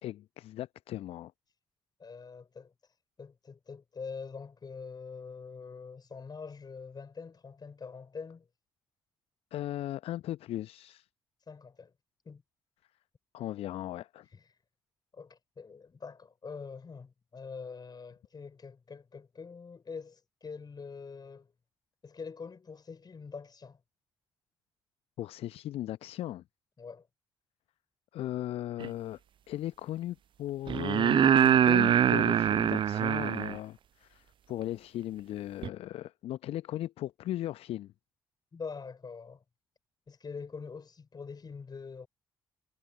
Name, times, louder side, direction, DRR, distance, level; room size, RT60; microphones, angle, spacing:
voice 1, 0.0-1.3 9.5-11.1 13.3-14.3 25.2-26.4 28.1-29.2 29.5-37.9, left 13 dB, 60° left, 0.8 m, -37 dB
voice 2, 2.0-2.7 3.2-8.5 11.5-11.9 12.2-12.4 14.3-14.5 15.1-21.5 22.0-23.8 26.8-27.1 38.5-39.4 40.1-42.1, left 5 dB, 35° left, 5.5 m, -44 dB
sound 1, 28.8-28.9 30.7-33.6 35.6-35.7, right 9 dB, 45° right, 0.6 m, -24 dB
figure-of-eight pair, 40°, 11 cm